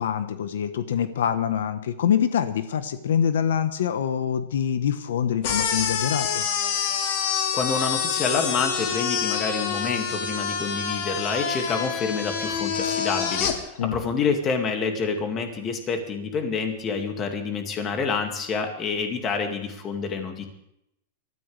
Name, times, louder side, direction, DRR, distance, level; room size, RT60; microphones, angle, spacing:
voice 1, 0.0-6.5 13.8-14.0, left 8 dB, 85° left, 10 dB, 1.2 m, -25 dB
sound 1, 5.4-13.5, left 7 dB, 45° left, 2.1 m, -27 dB
voice 2, 7.5-20.4, left 5 dB, 20° left, 4 dB, 2.2 m, -28 dB
23.5 x 14.0 x 3.4 m, 0.79 s
supercardioid pair, 170°, 0 cm